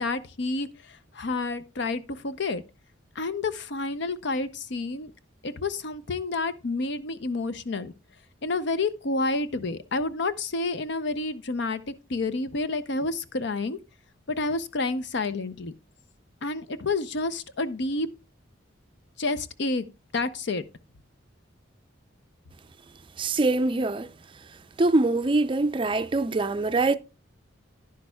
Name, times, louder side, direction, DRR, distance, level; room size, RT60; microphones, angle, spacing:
voice 1, 0.0-2.6 3.2-5.1 5.4-7.9 8.4-13.8 14.3-15.7 16.4-18.1 19.2-19.8 20.1-20.6, left 3 dB, 60° left, 0.6 m, -29 dB
voice 2, 23.2-24.1 24.8-26.9, right 2 dB, 25° right, 0.4 m, -23 dB
10.5 x 10.5 x 2.3 m
head